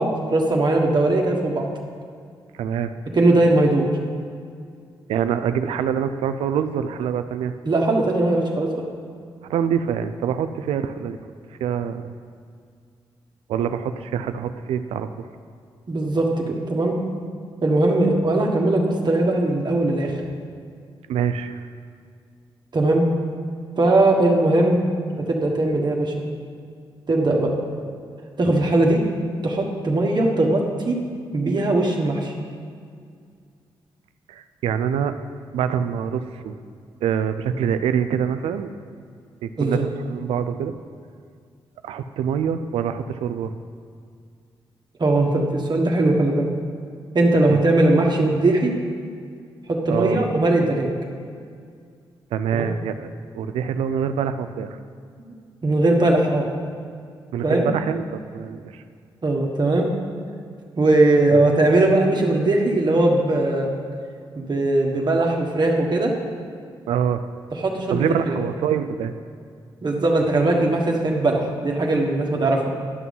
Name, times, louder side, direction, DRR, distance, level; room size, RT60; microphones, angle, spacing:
voice 1, 0.0-1.7 3.1-3.9 7.6-8.7 15.9-16.9 17.6-20.2 22.7-23.1 23.8-24.8 25.2-26.1 27.1-27.5 28.4-29.0 29.4-31.0 31.3-32.3 39.6-39.8 45.0-46.5 47.1-48.7 49.7-50.9 52.5-52.7 55.2-55.3 55.6-56.5 57.4-57.7 59.2-59.9 60.8-63.7 64.3-66.1 67.6-68.4 69.8-72.7, right 2 dB, 45° right, 0 dB, 1.6 m, -19 dB
voice 2, 2.6-2.9 5.1-7.5 9.4-11.2 11.6-12.1 13.5-15.1 21.1-21.6 34.3-35.2 35.5-36.6 37.0-38.7 39.4-40.7 41.8-43.5 47.5-47.6 49.9-50.2 52.3-53.1 53.3-54.8 57.3-58.8 66.9-67.2 67.9-69.1, right 8 dB, 90° right, 10 dB, 0.5 m, -25 dB
11.0 x 6.1 x 5.4 m, 2.2 s
supercardioid pair, 55°, 10 cm